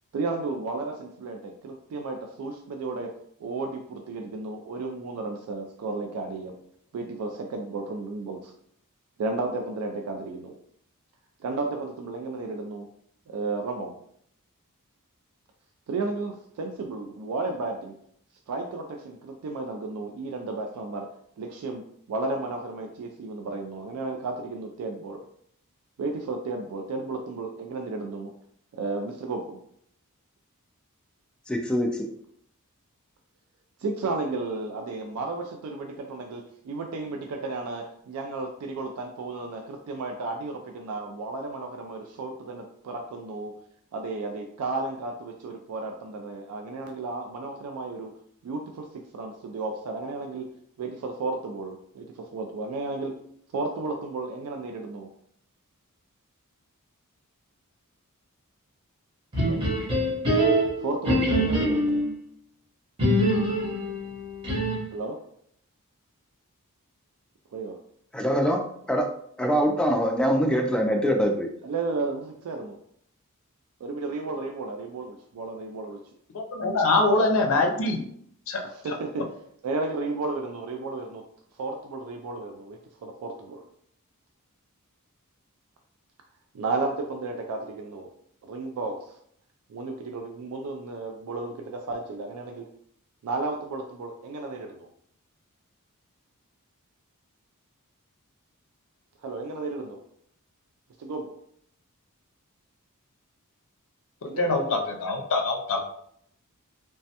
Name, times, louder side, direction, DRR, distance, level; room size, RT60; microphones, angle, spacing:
voice 1, 0.1-3.1 3.4-6.6 6.9-8.5 9.2-10.5 11.4-12.9 13.3-13.9 15.9-18.0 18.5-21.1 21.4-21.8 22.1-25.3 26.0-28.3 28.7-29.6 33.8-43.5 43.9-48.1 48.4-50.5 50.8-53.1 53.5-55.1 59.4-59.6 60.8-62.0 64.9-65.2 67.5-67.7 71.6-72.8 73.8-76.0 77.0-77.2 78.6-79.3 79.6-81.2 81.6-83.6 86.5-88.1 88.4-89.2 89.7-92.7 93.2-94.9 99.2-100.0 101.0-101.4 104.3-104.8, right 3 dB, 75° right, 3 dB, 0.3 m, -33 dB
voice 2, 31.5-32.1 68.1-68.6 68.9-69.1 69.4-71.5, equal, 5° left, 2 dB, 0.3 m, -23 dB
sound 1, 59.3-62.1 63.0-65.0, equal, 25° right, 0.8 m, -24 dB
voice 3, 76.3-78.0 78.5-78.6 78.9-79.0 104.4-105.8, left 2 dB, 65° left, 3 dB, 0.5 m, -24 dB
3.2 x 2.1 x 2.7 m, 0.68 s
head